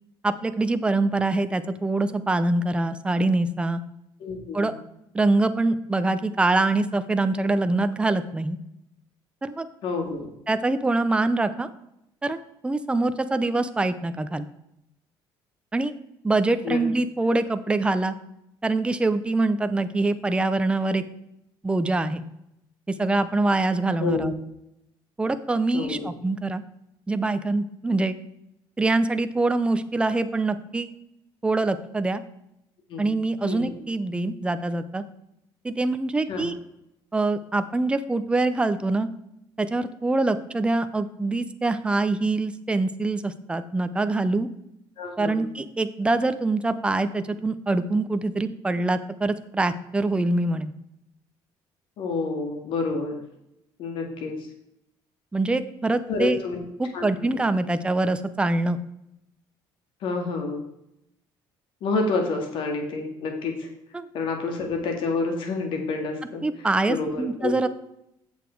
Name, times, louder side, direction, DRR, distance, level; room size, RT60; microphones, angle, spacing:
voice 1, 0.2-3.8 4.5-4.7 5.1-8.6 9.4-9.7 10.5-11.7 12.2-14.5 15.7-15.9 16.2-18.2 18.6-21.0 21.6-22.2 23.0-24.3 25.2-26.6 27.1-28.2 28.8-30.9 31.4-32.2 33.0-35.0 35.6-36.5 37.1-39.1 39.6-44.5 45.2-50.7 55.3-56.4 56.8-58.8 63.9-64.1 66.4-67.7, right 2 dB, 10° right, 10 dB, 0.6 m, -24 dB
voice 2, 4.2-4.8 9.8-10.3 16.6-16.8 24.0-24.3 25.7-26.1 32.9-33.1 33.4-33.8 36.3-36.5 45.0-45.4 52.0-53.2 53.8-54.3 56.1-56.6 56.9-57.4 60.0-60.6 61.8-63.7 64.1-66.4 66.9-67.5, left 4 dB, 65° left, 3 dB, 2.1 m, -28 dB
8.3 x 7.0 x 4.6 m, 0.82 s
cardioid pair, 125°, 9 cm